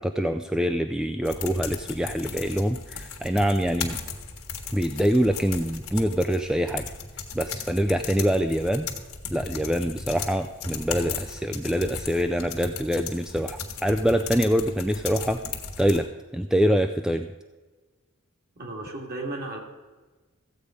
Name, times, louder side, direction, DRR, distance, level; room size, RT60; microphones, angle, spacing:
voice 1, 0.0-4.0 4.7-6.8 7.3-8.9 9.3-15.4 15.8-16.1 16.3-17.3, equal, 5° right, 6 dB, 0.3 m, -25 dB
sound 1, 1.2-16.0, left 5 dB, 70° left, 1.5 m, -36 dB
voice 2, 18.6-19.6, right 2 dB, 45° right, 1 dB, 2.3 m, -34 dB
14.5 x 8.2 x 5.1 m, 1.3 s
head